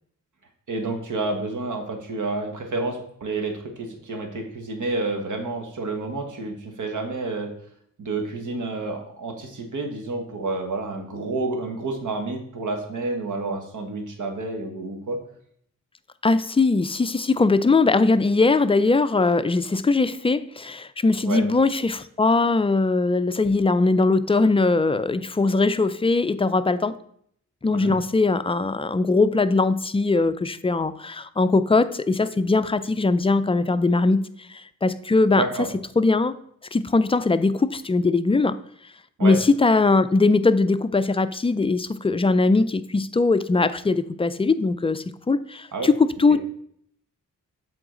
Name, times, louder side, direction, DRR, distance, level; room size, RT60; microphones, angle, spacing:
voice 1, 0.7-7.5 8.0-15.2 21.2-21.4 27.7-27.9 35.3-35.7 39.2-39.4 45.7-45.9 46.3-46.4, right 3 dB, 70° right, 4 dB, 1.3 m, -29 dB
voice 2, 16.2-27.0 27.6-35.4 36.0-36.3 36.7-38.6 39.2-46.4, left 3 dB, 20° left, 13 dB, 0.3 m, -21 dB
7.8 x 3.9 x 3.8 m, 0.66 s
cardioid pair, 75°, 31 cm